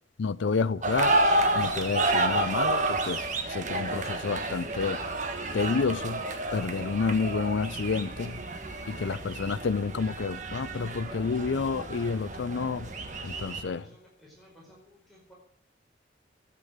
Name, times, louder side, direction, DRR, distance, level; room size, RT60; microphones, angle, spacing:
voice 1, 0.2-1.1 1.5-5.0 5.5-6.2 6.5-8.4 8.9-12.9 13.2-13.8, left 4 dB, 90° left, 0.5 m, -29 dB
sound 1, 0.8-13.6, right 2 dB, 40° right, 1.4 m, -30 dB
voice 2, 8.9-9.2 13.6-15.3, equal, ahead, 4.7 m, -55 dB
14.0 x 8.4 x 8.0 m
head